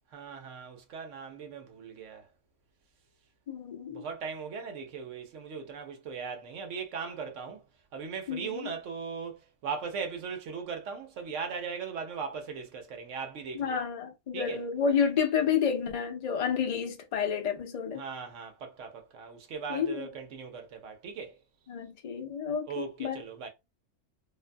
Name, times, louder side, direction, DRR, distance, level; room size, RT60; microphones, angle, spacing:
voice 1, 0.1-2.2 3.9-7.6 7.9-13.8 14.3-14.6 17.9-21.4 22.7-23.5, right 5 dB, 65° right, 0.9 m, -39 dB
voice 2, 3.5-4.1 8.3-8.7 13.5-18.0 19.7-20.1 21.7-23.2, left 7 dB, 90° left, 0.3 m, -30 dB
2.6 x 2.2 x 2.5 m
omnidirectional pair, 1.5 m